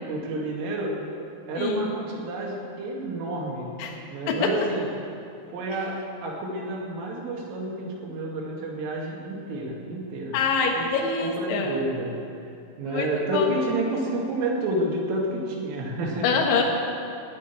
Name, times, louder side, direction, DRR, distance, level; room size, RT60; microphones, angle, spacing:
voice 1, 0.1-0.9 1.5-3.7 4.1-4.9 5.5-10.4 10.8-10.9 11.2-12.1 12.8-16.3, right 1 dB, 85° right, -2 dB, 4.8 m, -29 dB
voice 2, 1.6-1.9 3.8-4.0 4.3-4.4 10.3-11.8 12.9-13.1 13.3-13.6 16.2-16.6, left 5 dB, 75° left, 1 dB, 3.8 m, -25 dB
18.0 x 6.5 x 9.6 m, 2.6 s
omnidirectional pair, 5.6 m